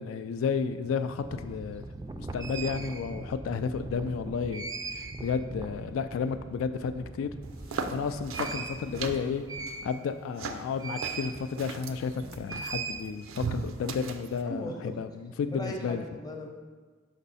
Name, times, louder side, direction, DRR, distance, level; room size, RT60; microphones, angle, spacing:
voice 1, 0.0-1.8 2.2-4.7 5.2-7.3 7.9-9.4 9.8-16.0, left 5 dB, 85° left, 10 dB, 0.3 m, -32 dB
sound 1, 1.2-10.3 10.8-11.4 11.7-13.5, right 3 dB, 20° right, 0.3 m, -40 dB
sound 2, 7.4-14.4, right 4 dB, 90° right, 0.5 m, -39 dB
voice 2, 14.5-14.9 15.5-16.5, equal, 20° left, 2 dB, 0.7 m, -37 dB
5.9 x 5.4 x 4.1 m, 1.4 s
head